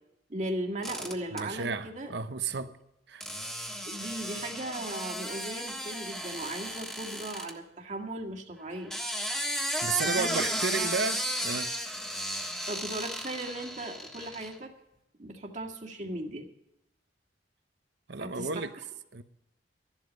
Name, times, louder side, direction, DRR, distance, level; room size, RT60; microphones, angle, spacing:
voice 1, 0.3-2.1 2.5-2.6 3.8-8.9 10.0-11.0 12.7-14.7 15.2-16.5 18.2-18.7, right 1 dB, 45° right, 1.9 m, -37 dB
sound 1, 0.8-1.4 3.2-7.5 8.7-14.5, equal, 5° left, 1.5 m, -34 dB
voice 2, 1.3-2.7 3.1-3.3 9.8-11.7 18.1-18.7 19.1-19.2, right 4 dB, 70° right, 0.9 m, -33 dB
13.5 x 11.5 x 5.3 m
head